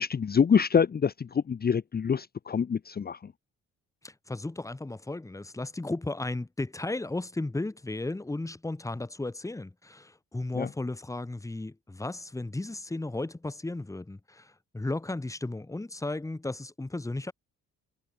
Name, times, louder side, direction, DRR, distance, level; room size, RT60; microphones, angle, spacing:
voice 1, 0.0-3.2 10.5-10.7, left 6 dB, 30° left, 0.9 m, -26 dB
voice 2, 4.0-17.3, left 2 dB, 10° left, 1.4 m, -35 dB
cardioid pair, 90°, 30 cm